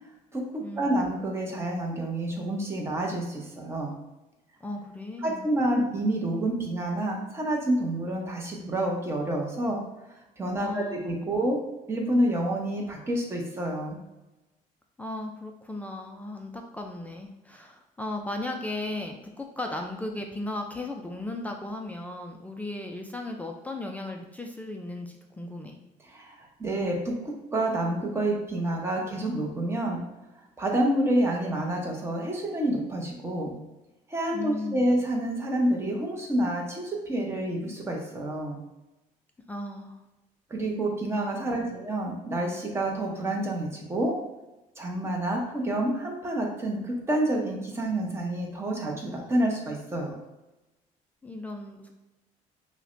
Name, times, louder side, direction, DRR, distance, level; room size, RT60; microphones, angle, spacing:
voice 1, 0.8-3.9 5.2-9.8 10.4-11.6 11.9-14.0 26.0-30.0 30.6-33.5 34.1-38.6 40.5-44.2 44.8-50.2, right 1 dB, 15° right, 0 dB, 0.8 m, -28 dB
voice 2, 4.6-5.4 10.6-11.1 15.0-25.8 34.3-35.0 39.5-40.0 41.5-41.8 51.2-51.9, left 2 dB, 10° left, 2 dB, 0.3 m, -36 dB
5.7 x 2.2 x 2.5 m, 1.0 s
cardioid pair, 140°, 15 cm